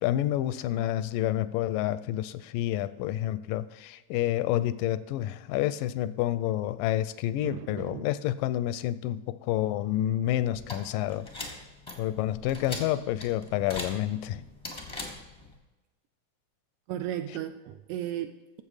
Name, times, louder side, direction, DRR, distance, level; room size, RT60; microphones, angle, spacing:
voice 1, 0.0-11.3 12.0-14.4, left 13 dB, 85° left, 15 dB, 2.2 m, -29 dB
voice 2, 7.4-8.1 16.9-18.6, right 11 dB, 80° right, 9 dB, 1.8 m, -35 dB
sound 1, 10.5-15.6, left 2 dB, 20° left, 0.7 m, -41 dB
14.0 x 7.3 x 4.9 m, 1.1 s
omnidirectional pair, 3.9 m